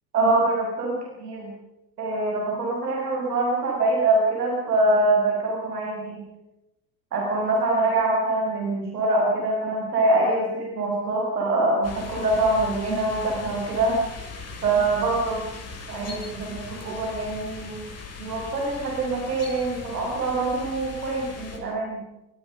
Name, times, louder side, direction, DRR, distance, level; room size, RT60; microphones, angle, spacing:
voice 1, 0.1-1.5 2.0-6.2 7.1-14.0 14.6-15.5 15.9-17.9 18.2-22.0, right 2 dB, 90° right, -1 dB, 6.0 m, -24 dB
sound 1, 11.8-21.6, left 4 dB, 35° left, 7.1 m, -39 dB
26.0 x 21.5 x 5.5 m, 0.92 s
hypercardioid pair, 70°, 45 cm